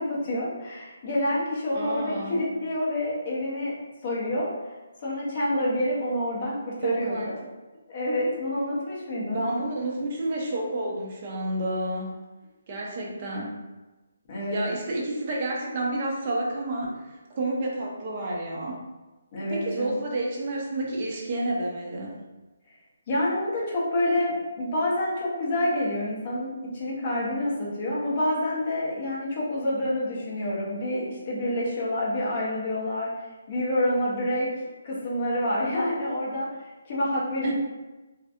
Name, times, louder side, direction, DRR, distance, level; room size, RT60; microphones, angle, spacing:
voice 1, 0.0-3.7 4.0-4.5 5.0-7.1 7.9-9.4 14.3-14.6 19.3-19.9 23.1-33.1 33.5-34.5 34.8-36.5 36.9-37.5, left 1 dB, 25° left, -6 dB, 0.6 m, -27 dB
voice 2, 1.7-2.4 6.8-7.3 9.3-12.1 12.7-13.5 14.5-18.8 19.4-22.2 37.4-37.5, right 2 dB, 25° right, -3 dB, 0.4 m, -30 dB
2.5 x 2.4 x 2.4 m, 1.1 s
hypercardioid pair, 175°, 0 cm